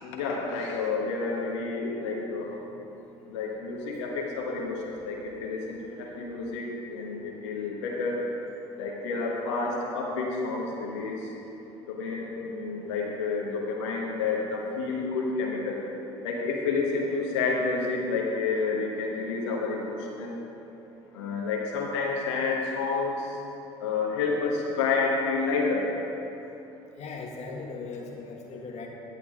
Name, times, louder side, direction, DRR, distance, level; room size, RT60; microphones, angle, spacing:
voice 1, 0.0-2.6 3.3-8.2 8.8-11.3 11.9-15.8 16.2-20.4 21.1-23.3 23.8-25.9, left 4 dB, 80° left, -2 dB, 1.3 m, -29 dB
voice 2, 27.0-28.9, left 4 dB, 50° left, 0 dB, 1.6 m, -39 dB
11.0 x 8.4 x 3.7 m, 3.0 s
hypercardioid pair, 65°, 15 cm